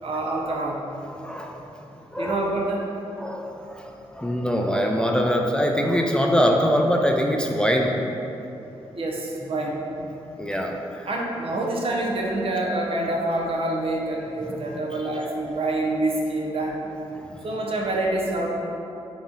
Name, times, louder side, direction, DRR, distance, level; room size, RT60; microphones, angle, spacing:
voice 1, 0.0-0.8 2.2-2.8 8.9-9.8 11.1-16.9 17.4-18.5, right 2 dB, 55° right, -1 dB, 0.7 m, -26 dB
voice 2, 1.2-1.6 2.1-2.4 3.2-8.0 10.4-11.1 14.5-14.6 14.9-15.1 17.1-17.4, equal, 10° left, 1 dB, 0.4 m, -23 dB
3.9 x 3.0 x 3.8 m, 2.9 s
cardioid pair, 55°, 11 cm